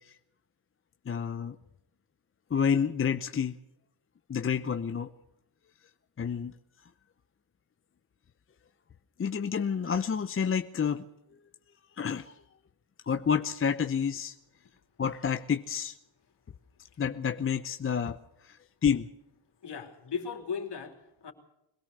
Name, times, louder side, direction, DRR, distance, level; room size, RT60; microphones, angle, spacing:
voice 1, 1.1-1.6 2.5-3.6 4.3-5.1 6.2-6.5 9.2-11.0 12.0-12.3 13.1-14.3 15.0-16.0 17.0-18.2 18.4-19.1, left 7 dB, 25° left, 9 dB, 0.7 m, -29 dB
voice 2, 19.6-21.3, left 6 dB, 55° left, 5 dB, 3.5 m, -37 dB
22.5 x 17.5 x 6.7 m, 0.83 s
cardioid pair, 105°, 48 cm